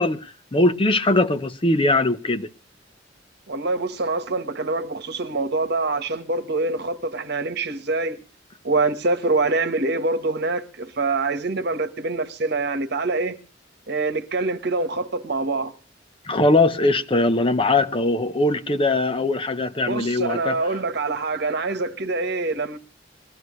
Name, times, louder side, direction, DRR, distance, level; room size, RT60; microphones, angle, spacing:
voice 1, 0.0-2.5 16.2-20.6, left 2 dB, 30° left, 0.8 m, -21 dB
voice 2, 3.5-8.2 8.6-13.4 13.9-15.7 19.9-22.8, right 3 dB, 60° right, 1.3 m, -25 dB
21.0 x 15.5 x 3.2 m
head